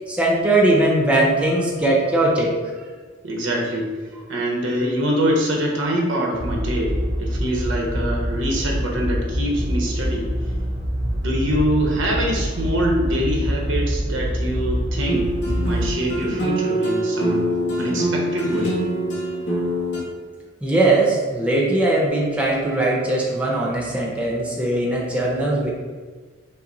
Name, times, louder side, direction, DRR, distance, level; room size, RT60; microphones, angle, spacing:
voice 1, 0.1-2.5 20.6-25.7, right 2 dB, 5° right, -3 dB, 0.6 m, -20 dB
voice 2, 3.2-3.9 4.3-10.3 11.1-15.3 15.6-17.5 17.8-18.8, equal, 90° right, -1 dB, 0.9 m, -24 dB
sound 1, 6.3-15.9, equal, 45° right, 0.7 m, -25 dB
sound 2, 15.1-20.0, right 1 dB, 60° left, 1.0 m, -24 dB
5.7 x 2.0 x 3.9 m, 1.5 s
head